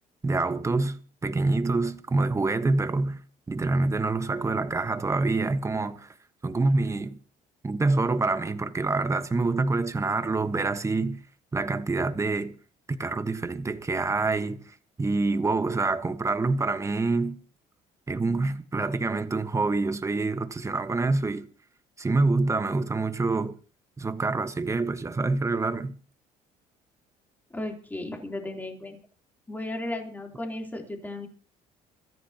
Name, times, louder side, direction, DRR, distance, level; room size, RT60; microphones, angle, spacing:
voice 1, 0.2-3.2 3.5-6.1 6.4-7.2 7.6-11.2 11.5-12.5 12.9-17.4 18.1-21.5 22.0-23.6 24.0-25.9, right 3 dB, 20° right, 1.3 m, -26 dB
voice 2, 27.5-29.0 29.5-31.3, left 2 dB, 10° left, 3.4 m, -35 dB
24.5 x 14.0 x 2.9 m
cardioid pair, 100°, 15 cm